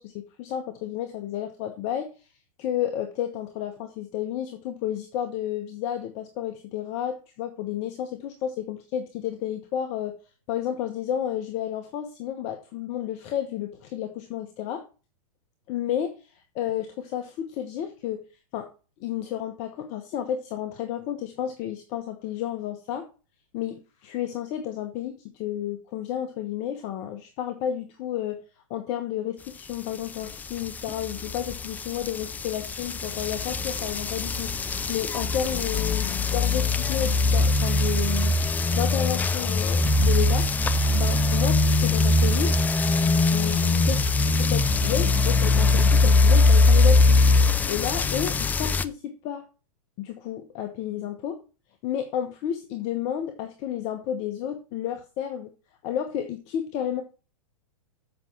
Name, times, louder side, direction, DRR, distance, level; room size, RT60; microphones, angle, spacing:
voice 1, 0.0-2.1 2.6-10.2 10.5-14.8 15.7-16.2 16.5-18.2 18.5-18.7 19.0-23.1 23.5-28.4 28.7-34.5 34.9-40.5 40.9-42.6 43.2-44.0 44.4-47.3 47.7-49.4 50.0-51.4 51.8-55.5 55.8-57.0, left 10 dB, 40° left, 6 dB, 1.1 m, -31 dB
sound 1, 30.3-48.8, left 3 dB, 10° left, 0.4 m, -22 dB
7.7 x 5.7 x 6.1 m, 0.34 s
hypercardioid pair, 130°, 18 cm